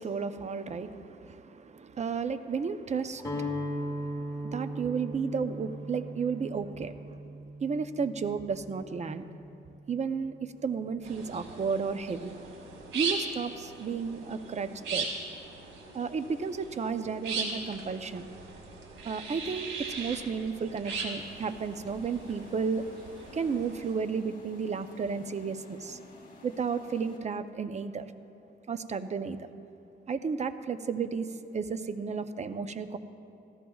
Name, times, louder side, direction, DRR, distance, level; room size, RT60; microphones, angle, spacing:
voice 1, 0.0-7.2 7.6-9.3 9.9-12.3 12.9-15.1 15.9-18.3 19.0-22.8 23.3-26.0 26.4-28.1 28.7-29.5 30.1-31.3 31.5-33.0, right 5 dB, 35° right, 11 dB, 0.6 m, -33 dB
Guitar, 3.2-9.2, equal, 20° left, 2.2 m, -38 dB
sound 1, 11.0-23.9, right 4 dB, 80° right, 2.3 m, -39 dB
sound 2, 21.2-27.2, left 3 dB, 45° left, 2.8 m, -52 dB
17.5 x 15.0 x 2.3 m, 2.8 s
cardioid pair, 90°, 20 cm